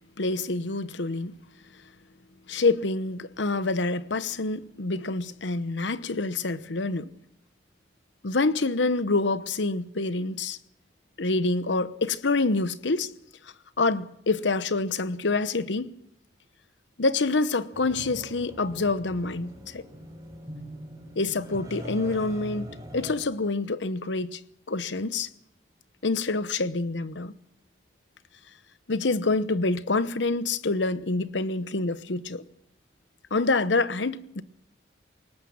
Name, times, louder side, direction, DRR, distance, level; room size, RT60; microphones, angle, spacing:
voice 1, 0.2-1.3 2.5-7.1 8.2-10.6 11.2-13.1 13.8-15.9 17.0-19.8 21.2-22.7 22.9-24.4 24.7-25.3 26.0-27.3 28.9-32.4 33.3-34.4, left 3 dB, 80° left, 1.0 m, -26 dB
sound 1, 17.7-23.2, equal, 20° right, 5.0 m, -42 dB
21.5 x 18.5 x 7.3 m
head